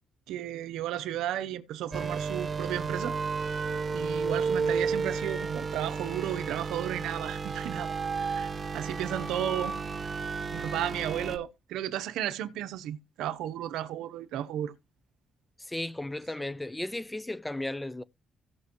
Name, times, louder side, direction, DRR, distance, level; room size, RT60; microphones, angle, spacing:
voice 1, 0.3-3.2 3.9-9.8 10.0-10.2 10.5-14.7, right 12 dB, 90° right, 0.8 m, -34 dB
sound 1, 1.9-11.4, right 5 dB, 35° right, 1.0 m, -32 dB
voice 2, 15.7-18.0, left 1 dB, 10° left, 0.4 m, -35 dB
16.5 x 6.1 x 3.0 m
cardioid pair, 90°, 0 cm